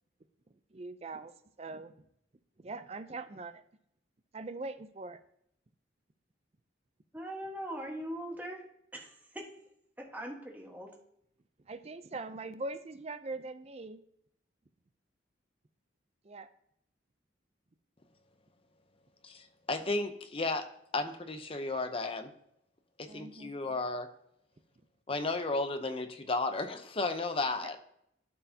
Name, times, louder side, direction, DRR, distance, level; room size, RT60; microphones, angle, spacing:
voice 1, 0.7-1.3 1.6-1.9 2.6-3.6 4.3-5.2 11.6-14.0 16.2-16.5 23.1-23.6, right 3 dB, 35° right, 11 dB, 0.5 m, -42 dB
voice 2, 7.1-8.6 8.9-9.5 10.0-10.9, right 1 dB, 10° right, 0 dB, 1.3 m, -41 dB
voice 3, 19.2-22.3 23.0-24.1 25.1-27.8, left 3 dB, 30° left, 8 dB, 0.7 m, -34 dB
12.0 x 4.7 x 2.7 m, 0.74 s
head